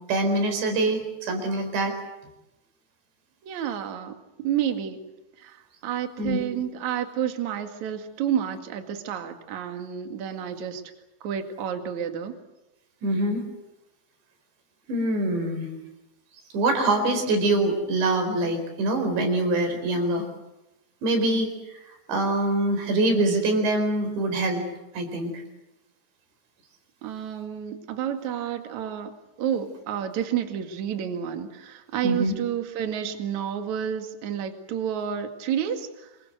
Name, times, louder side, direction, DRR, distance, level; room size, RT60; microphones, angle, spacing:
voice 1, 0.1-1.9 6.2-6.6 13.0-13.4 14.9-15.7 16.5-20.3 21.0-21.5 22.1-24.6 24.9-25.3 32.0-32.3, right 2 dB, 70° right, 6 dB, 6.7 m, -24 dB
voice 2, 3.4-5.0 5.4-10.8 11.2-12.3 27.0-29.1 29.4-36.1, right 9 dB, 50° right, 6 dB, 2.8 m, -30 dB
27.0 x 23.0 x 7.9 m, 0.97 s
omnidirectional pair, 5.4 m